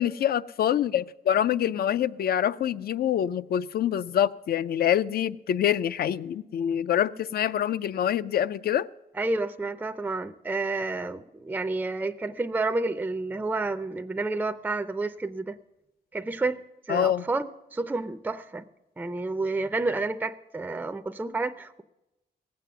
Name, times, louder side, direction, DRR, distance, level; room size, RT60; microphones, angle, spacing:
voice 1, 0.0-8.9 16.9-17.2, left 10 dB, 70° left, 0.4 m, -25 dB
voice 2, 9.1-15.5 16.1-16.6 16.9-18.6 19.0-21.8, right 3 dB, 10° right, 0.4 m, -30 dB
18.0 x 7.6 x 6.8 m
wide cardioid pair, 135°, 17 cm